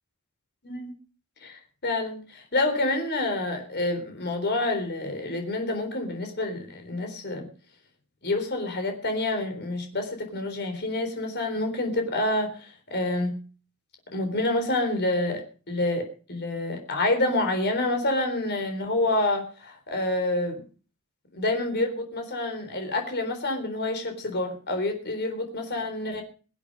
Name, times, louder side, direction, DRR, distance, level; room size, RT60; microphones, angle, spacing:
voice 1, 1.4-7.5 8.2-13.4 14.1-20.6 21.3-26.2, left 2 dB, 50° left, 5 dB, 3.9 m, -28 dB
23.0 x 8.3 x 5.3 m, 0.38 s
head